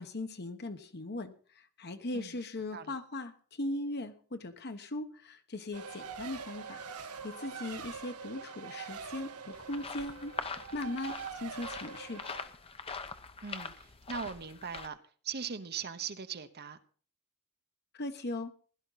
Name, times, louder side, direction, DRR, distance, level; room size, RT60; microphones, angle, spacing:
voice 1, 0.0-6.8 7.2-12.2 17.9-18.5, left 2 dB, 50° left, 1.2 m, -39 dB
Race car auto racing, 5.7-12.5, right 6 dB, 90° right, 1.6 m, -44 dB
sound 1, 9.5-14.9, left 4 dB, 25° left, 0.8 m, -43 dB
voice 2, 13.4-15.0 15.2-16.8, right 6 dB, 45° right, 0.9 m, -40 dB
16.5 x 11.5 x 4.1 m
head